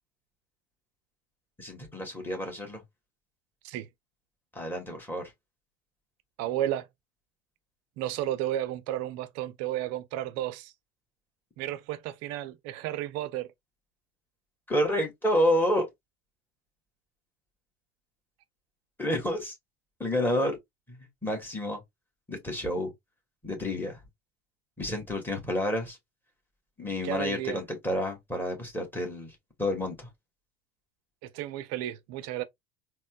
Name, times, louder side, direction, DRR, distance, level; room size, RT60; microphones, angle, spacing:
voice 1, 1.6-2.8 4.5-5.3 14.7-15.9 19.0-19.6 20.0-20.6 20.9-21.8 22.3-22.9 23.4-24.0 24.8-26.0 26.8-30.1, left 1 dB, 5° left, 1.4 m, -29 dB
voice 2, 6.4-6.9 8.0-10.7 11.6-13.5 27.0-27.6 31.2-32.4, right 13 dB, 45° right, 0.5 m, -32 dB
4.1 x 2.1 x 2.3 m
hypercardioid pair, 85°, 36 cm